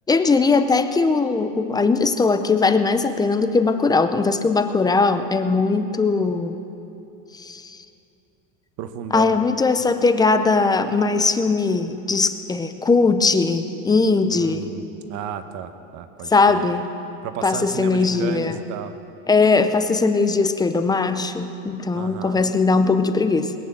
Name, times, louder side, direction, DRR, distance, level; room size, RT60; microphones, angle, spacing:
voice 1, 0.1-6.5 7.3-7.8 9.1-14.7 16.3-16.9 17.4-18.6 19.3-23.5, left 4 dB, 10° left, 9 dB, 0.5 m, -20 dB
voice 2, 8.8-9.3 14.3-16.6 17.2-18.9 21.9-22.4, right 8 dB, 50° right, 9 dB, 1.1 m, -33 dB
21.0 x 9.1 x 7.1 m, 2.8 s
supercardioid pair, 140°, 38 cm